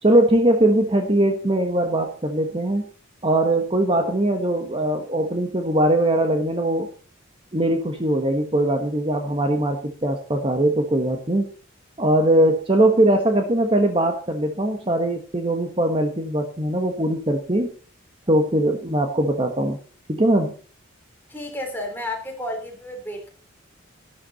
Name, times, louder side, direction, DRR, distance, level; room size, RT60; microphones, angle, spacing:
voice 1, 0.0-2.9 3.2-6.9 7.5-11.5 12.0-17.7 18.3-19.8 20.1-20.5, right 1 dB, 25° right, 4 dB, 1.3 m, -21 dB
voice 2, 21.3-23.3, left 1 dB, 10° left, 2 dB, 3.4 m, -31 dB
12.0 x 12.0 x 4.1 m, 0.39 s
head